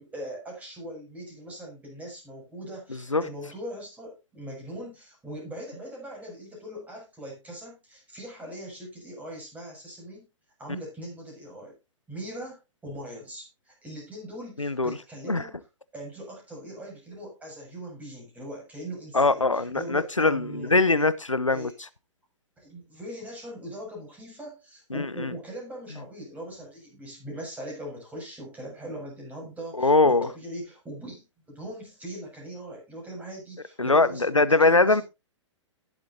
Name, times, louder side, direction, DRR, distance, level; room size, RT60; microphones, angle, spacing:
voice 1, 0.0-10.3 10.6-11.7 12.1-15.6 15.9-21.1 21.5-21.7 22.6-35.0, right 1 dB, 10° right, 6.9 m, -40 dB
voice 2, 14.6-15.0 15.3-15.4 19.1-21.7 24.9-25.3 29.8-30.3 33.8-35.0, left 3 dB, 85° left, 0.8 m, -22 dB
19.0 x 7.7 x 2.8 m
figure-of-eight pair, 115°, 16 cm